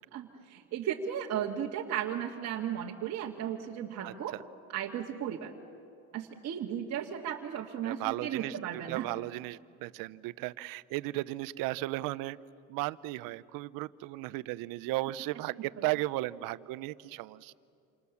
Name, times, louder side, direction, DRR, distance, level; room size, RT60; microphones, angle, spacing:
voice 1, 0.1-4.3 4.7-5.5 6.1-9.1, right 9 dB, 45° right, -2 dB, 1.8 m, -35 dB
voice 2, 4.0-4.4 7.8-8.6 8.9-12.4 12.7-17.5, right 18 dB, 65° right, 17 dB, 0.8 m, -35 dB
28.0 x 27.5 x 7.2 m, 2.4 s
cardioid pair, 125°, 36 cm